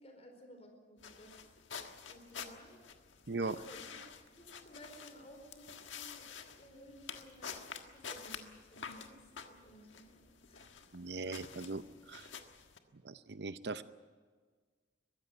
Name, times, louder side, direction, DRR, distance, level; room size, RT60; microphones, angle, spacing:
voice 1, 0.0-1.3 2.0-2.8 3.6-3.9 4.4-7.7 7.9-10.7, equal, 35° left, 4 dB, 4.6 m, -56 dB
sound 1, 1.0-12.8, left 6 dB, 90° left, 1.6 m, -49 dB
voice 2, 3.3-3.6 10.9-12.3 13.0-13.8, right 3 dB, 60° right, 12 dB, 0.7 m, -39 dB
22.0 x 15.5 x 9.2 m, 1.5 s
head